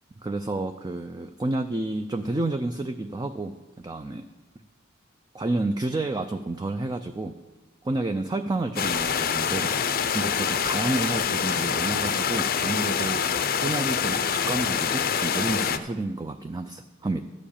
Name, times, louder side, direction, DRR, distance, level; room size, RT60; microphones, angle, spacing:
voice 1, 0.2-4.2 5.3-7.4 7.8-9.7 10.1-13.3 13.6-17.2, right 2 dB, 20° right, 7 dB, 0.4 m, -30 dB
sound 1, 8.8-15.8, left 7 dB, 50° left, 0.5 m, -26 dB
12.5 x 5.0 x 8.5 m, 1.1 s
head